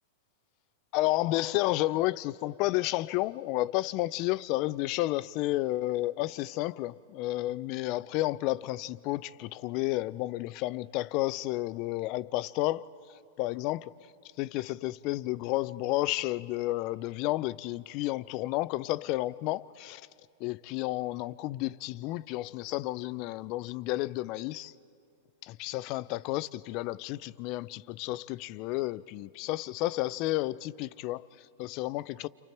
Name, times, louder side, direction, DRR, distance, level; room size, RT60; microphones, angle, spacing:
voice 1, 0.9-12.8 13.1-13.9 14.4-20.0 20.4-24.7 25.4-32.3, left 18 dB, 45° left, 0.5 m, -31 dB
29.5 x 27.5 x 4.6 m
hypercardioid pair, 115°, 0 cm